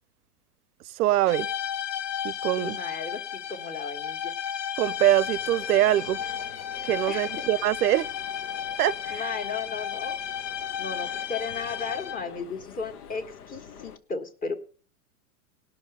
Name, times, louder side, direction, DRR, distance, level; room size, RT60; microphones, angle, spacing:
voice 1, 0.9-1.5 2.2-2.8 4.8-6.2 6.8-8.1 8.8-9.3, right 14 dB, 85° right, 0.6 m, -24 dB
sound 1, 1.3-12.4, left 9 dB, 35° left, 0.8 m, -33 dB
voice 2, 2.6-4.3 7.1-7.5 9.1-10.2 10.8-14.6, left 4 dB, 20° left, 1.4 m, -35 dB
sound 2, 4.8-14.0, left 7 dB, 85° left, 1.0 m, -47 dB
17.5 x 6.1 x 6.6 m
hypercardioid pair, 120°, 44 cm